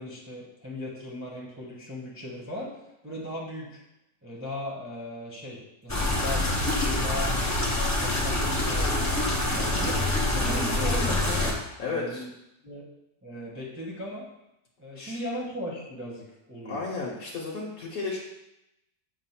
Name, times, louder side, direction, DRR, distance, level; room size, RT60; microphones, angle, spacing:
voice 1, 0.0-3.8 4.2-7.3 7.7-10.0 10.3-11.5 11.8-12.3 12.6-12.8 13.2-14.3 14.8-16.8, left 1 dB, 10° right, -4 dB, 0.8 m, -37 dB
sound 1, 5.9-11.5, left 1 dB, 20° left, 0.5 m, -26 dB
voice 2, 11.8-12.2 15.0-15.2 16.6-18.2, left 4 dB, 60° left, -3 dB, 1.3 m, -33 dB
7.1 x 2.5 x 5.7 m, 0.88 s
omnidirectional pair, 1.9 m